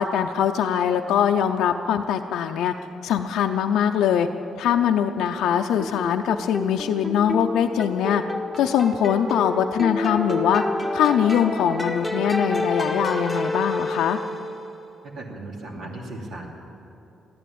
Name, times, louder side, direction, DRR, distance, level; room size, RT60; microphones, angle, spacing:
voice 1, 0.0-2.7 3.0-4.3 4.6-8.2 8.6-10.6 10.9-14.2, left 9 dB, 85° left, 4 dB, 0.5 m, -22 dB
sound 1, 5.8-14.7, left 1 dB, ahead, 1.7 m, -29 dB
voice 2, 15.1-16.5, right 2 dB, 70° right, -1 dB, 3.1 m, -36 dB
14.5 x 11.5 x 8.6 m, 3.0 s
cardioid pair, 90°, 0 cm